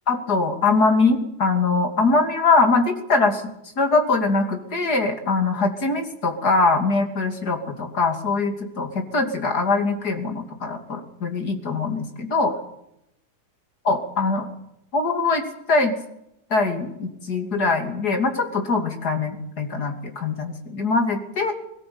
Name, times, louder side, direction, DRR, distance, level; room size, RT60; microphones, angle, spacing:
voice 1, 0.1-3.4 3.8-12.6 13.9-14.5 14.9-15.4 15.7-16.0 16.5-21.5, left 3 dB, 80° left, 4 dB, 3.4 m, -22 dB
20.5 x 18.0 x 8.7 m, 0.82 s
omnidirectional pair, 1.7 m